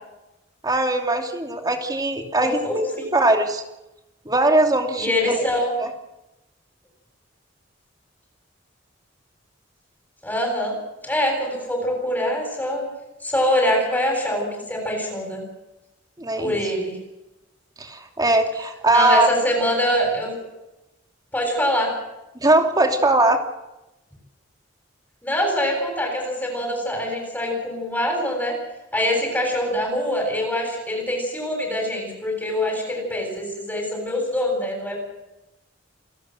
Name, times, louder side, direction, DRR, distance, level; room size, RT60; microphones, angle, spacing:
voice 1, 0.6-3.6 4.2-5.4 5.8-5.9 16.2-16.6 17.8-19.3 22.4-23.4, right 2 dB, 20° right, 4 dB, 2.9 m, -20 dB
voice 2, 2.4-3.2 5.0-5.7 10.2-10.8 11.0-12.8 13.2-15.4 16.4-17.0 18.9-20.4 21.3-22.0 25.2-28.6 28.9-35.0, left 1 dB, 10° left, 0 dB, 7.7 m, -24 dB
28.5 x 12.5 x 7.8 m, 0.94 s
head